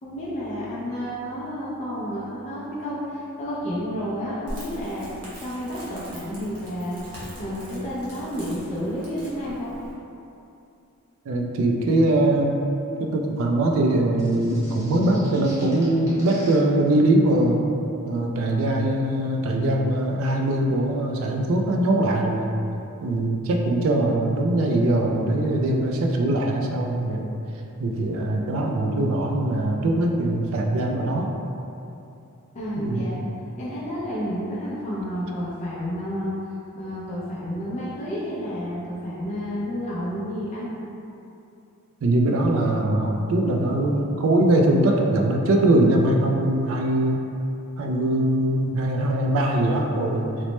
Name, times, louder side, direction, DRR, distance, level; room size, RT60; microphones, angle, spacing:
voice 1, 0.0-9.7 32.5-33.2 33.6-36.3 36.8-40.7, equal, 30° left, -8 dB, 0.4 m, -30 dB
Crackle, 4.5-9.9, equal, 90° right, 0.9 m, -41 dB
voice 2, 11.3-12.5 13.0-17.6 18.1-22.5 23.0-27.3 27.8-31.3 32.8-33.1 42.0-47.2 47.8-50.2, right 1 dB, 60° right, 1 dB, 0.3 m, -22 dB
sound 1, 14.2-16.5, equal, 15° right, 0.7 m, -44 dB
2.9 x 2.0 x 3.1 m, 2.7 s
head